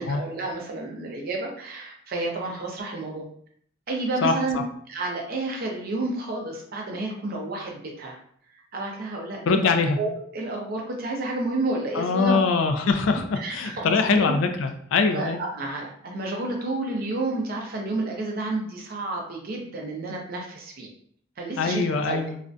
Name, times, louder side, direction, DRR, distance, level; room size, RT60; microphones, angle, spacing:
voice 1, 0.0-3.2 3.9-4.6 4.9-8.2 8.7-9.6 10.0-12.4 13.4-14.4 15.1-20.9 21.4-22.2, right 2 dB, 50° right, 0 dB, 0.6 m, -30 dB
voice 2, 4.2-4.6 9.5-10.0 11.9-15.4 21.6-22.4, left 4 dB, 75° left, 7 dB, 0.3 m, -23 dB
2.4 x 2.1 x 2.5 m, 0.62 s
head